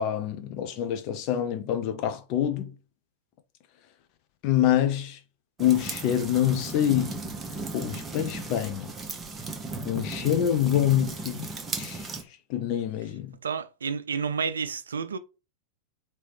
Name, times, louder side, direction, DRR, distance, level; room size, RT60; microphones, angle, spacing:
voice 1, 0.0-2.7 4.4-5.2 5.6-7.2 7.7-8.9 9.8-11.5 11.8-12.1 12.5-13.4, left 11 dB, 40° left, 0.6 m, -26 dB
sound 1, 5.6-12.2, right 3 dB, 15° right, 0.8 m, -36 dB
voice 2, 13.4-15.2, right 6 dB, 70° right, 0.3 m, -30 dB
3.1 x 3.0 x 3.2 m
figure-of-eight pair, 90°, 0 cm